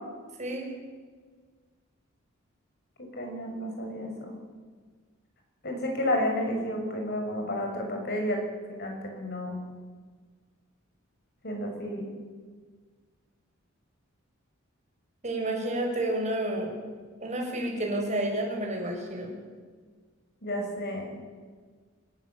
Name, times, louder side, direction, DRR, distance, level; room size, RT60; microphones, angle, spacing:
voice 1, 3.0-4.4 5.6-9.6 11.4-12.1 20.4-21.1, left 1 dB, 55° left, 2 dB, 6.5 m, -31 dB
voice 2, 15.2-16.7 17.2-19.3, right 1 dB, 35° right, 1 dB, 6.1 m, -30 dB
27.0 x 15.5 x 8.9 m, 1.5 s
head